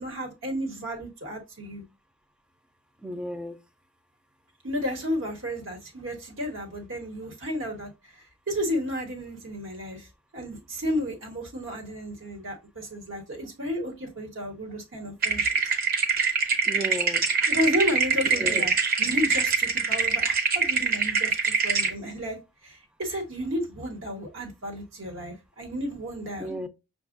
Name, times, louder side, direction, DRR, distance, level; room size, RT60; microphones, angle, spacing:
voice 1, 0.0-1.8 4.6-10.1 10.3-15.5 17.5-18.7 19.0-22.4 22.6-26.5, equal, 90° right, 1.2 m, -32 dB
voice 2, 3.0-3.6 16.7-17.2 18.3-18.7 26.4-26.7, equal, 5° right, 0.3 m, -33 dB
sound 1, 15.2-21.9, right 5 dB, 50° right, 0.7 m, -24 dB
6.0 x 2.3 x 2.4 m
head